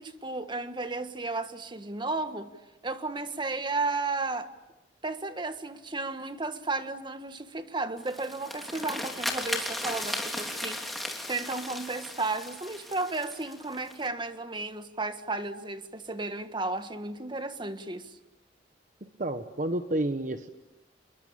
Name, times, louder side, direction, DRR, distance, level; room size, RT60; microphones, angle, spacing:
voice 1, 0.0-2.5 2.8-4.5 5.0-10.8 11.3-18.2, right 3 dB, 25° right, 1.5 m, -33 dB
sound 1, 8.0-14.1, left 1 dB, ahead, 3.2 m, -36 dB
voice 2, 19.0-20.5, right 1 dB, 45° right, 1.1 m, -30 dB
28.0 x 22.5 x 8.8 m
head